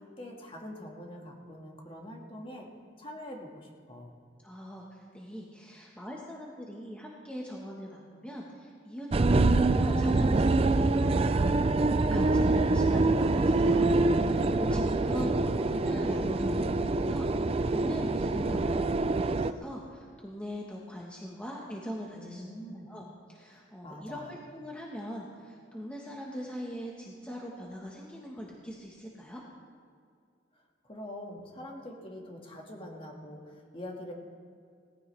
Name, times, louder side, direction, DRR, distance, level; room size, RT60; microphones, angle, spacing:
voice 1, 0.0-2.7 3.0-4.2 14.5-15.5 18.4-18.7 22.1-22.9 23.5-24.4 30.5-34.1, left 1 dB, 30° left, 0 dB, 1.9 m, -44 dB
voice 2, 4.4-9.1 9.4-22.4 22.9-29.4, equal, 5° left, -3 dB, 1.3 m, -41 dB
sound 1, 9.1-19.5, right 2 dB, 30° right, 0.4 m, -25 dB
18.5 x 15.0 x 3.4 m, 2.3 s
head